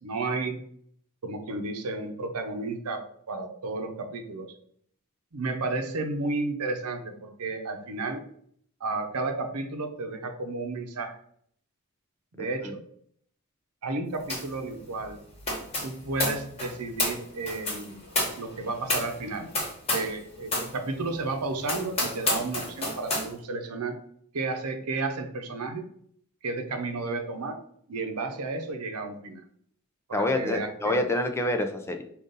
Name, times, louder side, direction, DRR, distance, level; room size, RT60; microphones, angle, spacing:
voice 1, 0.0-0.7 1.2-4.5 5.3-8.2 8.8-11.2 12.3-12.8 13.8-15.2 15.8-18.0 18.4-19.5 19.9-24.0 24.3-25.8 26.4-27.6 27.9-29.4 30.1-31.0, right 3 dB, 90° right, 6 dB, 0.7 m, -32 dB
sound 1, 14.3-14.6 14.8-20.2 20.5-20.7 21.2-21.3 21.6-23.3, left 2 dB, 30° left, 1.3 m, -30 dB
voice 2, 30.1-32.0, left 1 dB, 10° left, 5 dB, 0.4 m, -27 dB
5.2 x 2.5 x 3.9 m, 0.64 s
head